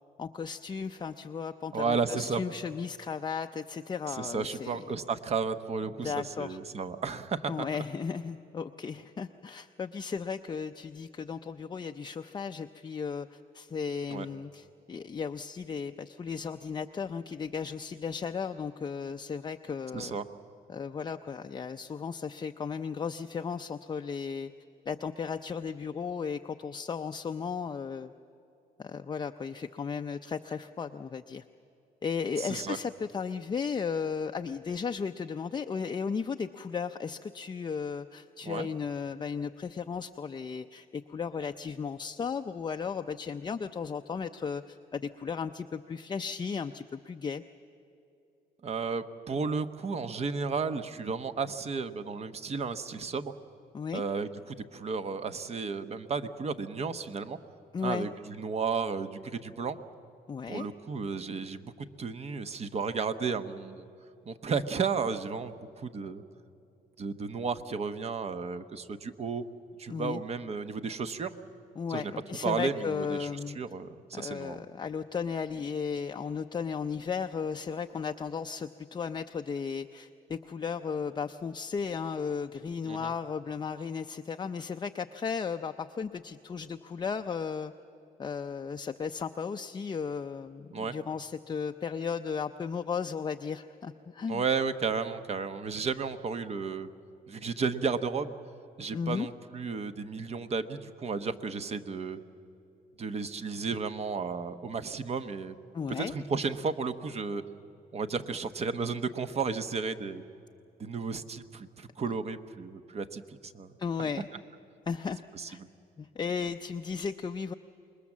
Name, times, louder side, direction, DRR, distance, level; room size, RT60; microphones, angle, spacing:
voice 1, 0.2-4.9 6.0-6.6 7.5-20.2 20.7-24.5 24.9-28.1 28.8-31.4 32.0-47.4 53.7-54.0 57.7-58.1 60.3-60.7 69.9-70.2 71.8-73.6 74.1-87.7 88.2-94.4 98.9-99.3 105.7-106.1 113.8-114.3 114.9-115.2 115.5-115.6 116.0-117.5, left 6 dB, 25° left, 6 dB, 0.5 m, -35 dB
voice 2, 1.7-2.4 4.1-7.7 14.1-14.3 19.9-20.3 32.4-32.8 38.4-38.7 48.6-53.3 53.9-57.4 57.8-59.8 60.5-61.7 62.0-63.9 64.3-66.2 67.0-69.4 69.8-71.3 71.9-72.1 72.4-73.3 73.5-74.6 82.9-83.1 90.7-90.9 94.3-96.9 97.3-98.3 98.8-102.2 103.0-105.6 106.0-107.4 107.9-110.2 110.8-113.7 115.3-115.7, right 5 dB, 40° right, 10 dB, 1.1 m, -33 dB
26.5 x 21.0 x 7.4 m, 2.8 s
cardioid pair, 110°, 17 cm